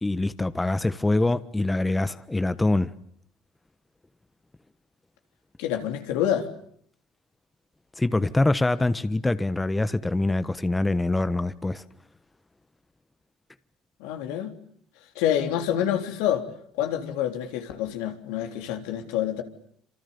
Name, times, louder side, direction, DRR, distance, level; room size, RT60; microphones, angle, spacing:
voice 1, 0.0-2.9 8.0-11.8, left 2 dB, 15° left, 1.3 m, -24 dB
voice 2, 5.6-6.5 14.0-14.5 15.2-16.4 16.8-19.4, left 10 dB, 80° left, 3.7 m, -27 dB
28.5 x 27.0 x 7.2 m
supercardioid pair, 75°, 0 cm